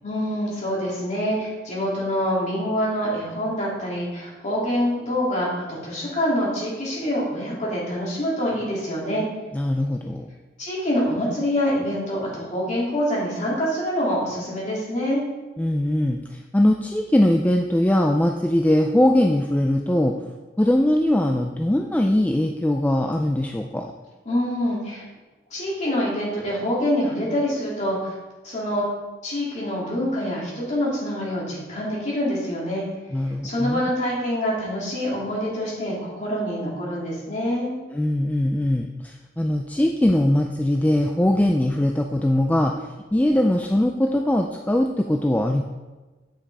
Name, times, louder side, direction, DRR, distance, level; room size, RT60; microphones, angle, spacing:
voice 1, 0.0-9.2 10.6-15.2 24.2-25.0 25.5-28.1 28.4-28.8 29.2-32.8 33.4-37.7, equal, 40° left, -6 dB, 2.9 m, -25 dB
voice 2, 9.5-10.3 15.6-20.1 20.6-23.9 33.1-33.8 37.9-45.6, left 1 dB, 10° left, 2 dB, 0.3 m, -21 dB
8.9 x 5.8 x 4.1 m, 1.2 s
head